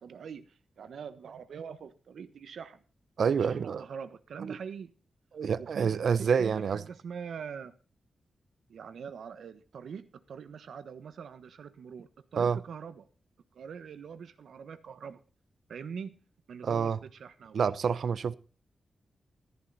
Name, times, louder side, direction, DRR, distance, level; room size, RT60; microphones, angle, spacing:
voice 1, 0.0-2.8 3.4-4.9 5.6-7.8 8.7-13.1 13.5-15.2 15.7-16.2 16.5-17.8, right 6 dB, 85° right, 1.2 m, -43 dB
voice 2, 3.2-3.8 4.4-4.6 5.3-6.8 12.4-12.6 16.6-17.0 17.5-18.4, right 6 dB, 70° right, 0.7 m, -28 dB
13.5 x 11.5 x 4.1 m
wide cardioid pair, 140°, 0 cm